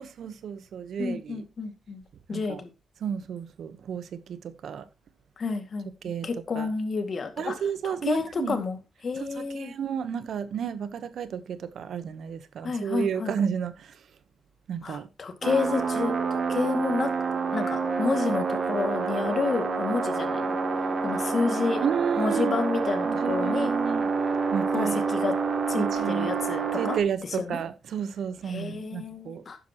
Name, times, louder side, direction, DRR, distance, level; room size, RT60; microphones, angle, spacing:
voice 1, 0.0-1.4 2.3-2.6 3.0-4.9 6.0-6.3 6.5-6.7 7.4-8.6 9.1-14.1 14.7-15.1 21.8-22.6 23.0-24.1 24.5-25.1 25.8-26.3 26.7-29.4, right 7 dB, 70° right, 1.0 m, -32 dB
voice 2, 1.0-2.0 2.3-2.7 5.4-5.9 6.2-7.5 7.8-8.8 9.0-9.7 12.6-13.3 14.8-17.1 17.5-20.6 21.0-21.8 22.2-23.7 24.7-25.3 25.7-27.0 27.5-27.6 28.5-29.6, left 4 dB, 55° left, 2.1 m, -30 dB
sound 1, 15.4-27.0, right 4 dB, 55° right, 2.5 m, -28 dB
12.0 x 9.3 x 3.0 m
cardioid pair, 60°, 0 cm